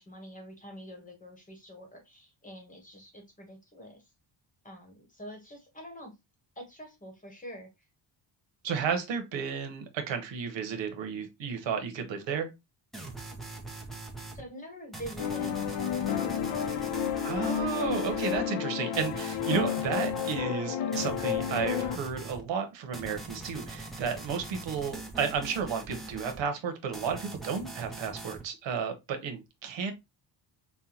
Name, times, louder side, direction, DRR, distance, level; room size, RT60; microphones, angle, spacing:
voice 1, 0.0-4.0 4.6-6.1 6.5-7.7 14.3-16.2, equal, 20° left, 1.0 m, -46 dB
voice 2, 8.6-12.5 17.2-29.9, right 6 dB, 90° right, 1.0 m, -32 dB
sound 1, 12.9-14.4 14.9-18.4 18.9-20.4 20.9-22.4 22.9-26.4 26.9-28.4, right 2 dB, ahead, 0.5 m, -42 dB
sound 2, 15.2-22.0, left 9 dB, 75° left, 0.7 m, -31 dB
5.4 x 2.2 x 2.8 m
wide cardioid pair, 180°, 44 cm